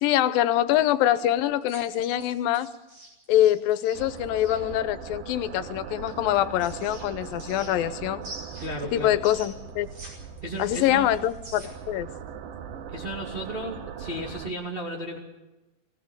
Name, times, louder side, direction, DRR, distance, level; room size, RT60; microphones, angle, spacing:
voice 1, 0.0-2.7 3.3-8.3 8.9-9.9 10.6-12.1, left 12 dB, 75° left, 14 dB, 2.5 m, -24 dB
sound 1, 1.6-4.6 6.1-7.9 8.2-10.1 10.4-11.9, right 1 dB, 40° right, 6.6 m, -45 dB
sound 2, 3.9-14.5, right 7 dB, 70° right, 2.8 m, -40 dB
voice 2, 8.6-9.2 10.4-11.1 12.9-15.2, right 1 dB, 20° right, -2 dB, 2.1 m, -34 dB
20.0 x 16.5 x 8.8 m, 1.0 s
omnidirectional pair, 4.3 m